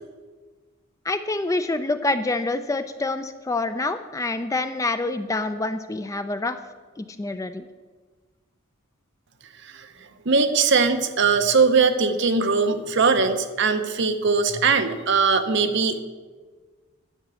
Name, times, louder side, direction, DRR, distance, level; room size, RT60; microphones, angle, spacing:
voice 1, 1.1-6.6 7.0-7.6, left 2 dB, 15° left, 10 dB, 0.3 m, -26 dB
voice 2, 10.3-16.0, right 4 dB, 55° right, 8 dB, 0.8 m, -20 dB
11.0 x 5.9 x 6.8 m, 1.4 s
head